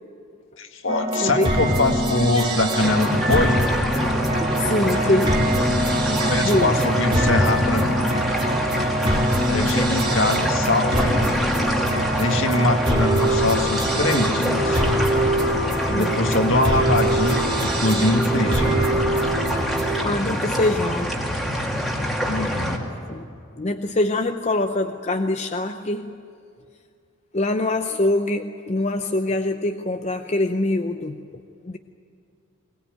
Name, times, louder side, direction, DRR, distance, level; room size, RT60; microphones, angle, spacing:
voice 1, 0.6-3.6 6.1-8.1 9.5-11.4 12.1-14.8 15.8-18.9 22.2-22.8, left 2 dB, 60° left, 5 dB, 1.9 m, -23 dB
sound 1, 0.9-20.0, right 1 dB, 20° right, 2.6 m, -23 dB
voice 2, 1.2-1.5 4.6-5.5 6.4-6.7 16.0-16.2 20.0-21.1 23.1-23.2 23.6-26.2 27.3-31.2 31.6-31.8, left 2 dB, 30° left, 6 dB, 0.6 m, -24 dB
sound 2, 2.8-22.8, equal, ahead, 2.3 m, -26 dB
21.5 x 20.5 x 9.2 m, 2.5 s
head